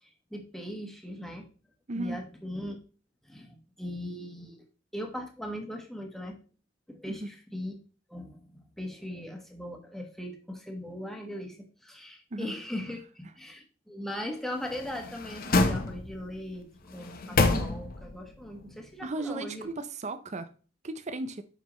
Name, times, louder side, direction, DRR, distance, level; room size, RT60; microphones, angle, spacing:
voice 1, 0.0-1.5 1.9-2.8 3.2-4.7 4.9-6.4 6.9-7.8 8.1-19.7, left 1 dB, ahead, 1.3 m, -39 dB
sound 1, 14.6-16.3 16.9-18.2 18.6-18.7, left 2 dB, 50° left, 0.9 m, -27 dB
voice 2, 19.0-20.5 20.8-21.4, right 2 dB, 40° right, 0.5 m, -35 dB
7.4 x 5.5 x 3.1 m
head